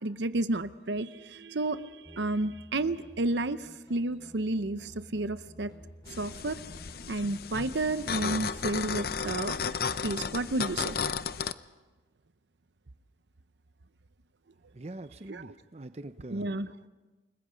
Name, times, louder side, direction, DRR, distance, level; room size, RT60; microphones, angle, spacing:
voice 1, 0.0-5.7 6.2-6.6 7.1-9.7 10.0-11.0 15.3-15.5 16.3-16.7, right 2 dB, 80° right, 13 dB, 0.8 m, -31 dB
sound 1, 2.1-9.4, equal, 25° left, 4.0 m, -53 dB
sound 2, 6.1-11.5, left 6 dB, 55° left, 0.6 m, -34 dB
voice 2, 14.7-16.9, right 2 dB, 35° right, 11 dB, 0.6 m, -44 dB
29.0 x 21.0 x 5.2 m, 1.2 s
head